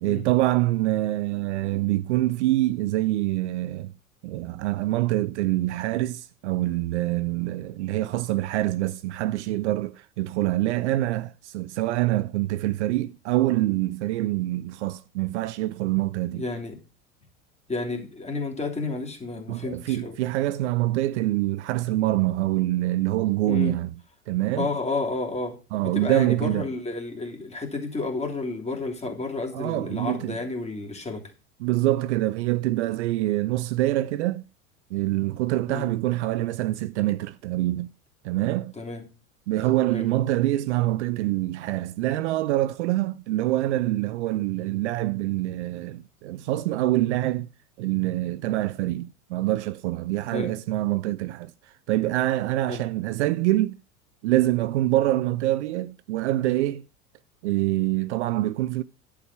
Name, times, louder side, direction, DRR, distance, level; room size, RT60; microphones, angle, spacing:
voice 1, 0.0-3.9 4.2-16.4 19.5-23.9 24.3-24.7 25.7-26.7 29.5-30.4 31.6-34.4 34.9-37.9 38.2-38.7 39.5-47.5 47.8-51.5 51.9-53.8 54.2-56.8 57.4-58.8, right 16 dB, 55° right, 0.6 m, -25 dB
voice 2, 16.3-16.8 17.7-20.2 23.5-23.7 24.6-25.6 25.8-31.3 35.7-35.9 38.8-39.1 39.9-40.1 50.3-50.5 52.7-52.8, left 3 dB, 15° left, 2.9 m, -31 dB
11.0 x 4.9 x 7.2 m
figure-of-eight pair, 80°, 42 cm